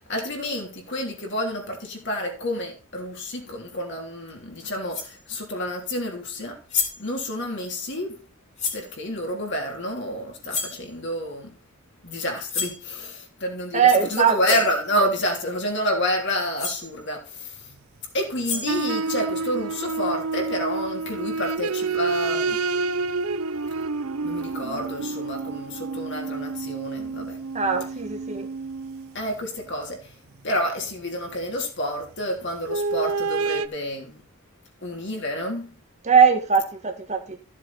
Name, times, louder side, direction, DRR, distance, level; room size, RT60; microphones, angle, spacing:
voice 1, 0.1-6.6 7.0-8.2 8.7-11.5 12.0-17.6 18.1-22.6 24.2-27.4 29.1-30.1 30.4-34.2 34.8-35.7, equal, 50° left, 3.2 m, -29 dB
sound 1, 4.3-4.4 4.9-5.2 6.4-6.5 6.7-7.1 8.6-8.9 10.5-10.8 12.5-12.8 14.0-14.1 14.4-14.7 16.3-16.4 16.6-16.9 18.2-18.9, left 5 dB, 30° left, 3.2 m, -29 dB
voice 2, 13.7-14.6 27.5-28.5 36.0-37.2, right 6 dB, 30° right, 1.8 m, -20 dB
sound 2, 18.5-29.2 30.9-31.0 32.6-33.7, right 4 dB, 70° right, 0.7 m, -29 dB
14.5 x 7.5 x 4.1 m
head